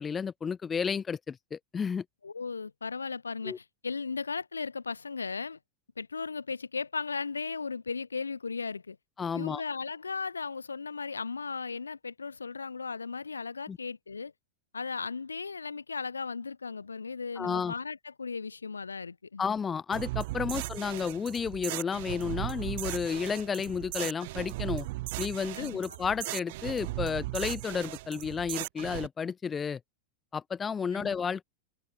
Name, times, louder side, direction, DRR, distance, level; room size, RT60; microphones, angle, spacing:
voice 1, 0.0-2.0 3.4-3.6 9.2-9.6 13.7-13.8 17.4-17.7 19.4-24.9 25.2-29.8 30.3-31.4, left 6 dB, 20° left, 3.8 m, -32 dB
voice 2, 2.2-5.6 6.0-9.0 9.3-14.3 14.7-19.4 20.4-20.5 25.6-25.8 30.9-31.1, left 4 dB, 75° left, 2.0 m, -36 dB
sound 1, 19.9-29.1, right 20 dB, 50° right, 2.5 m, -37 dB
open air
figure-of-eight pair, 90°, 0 cm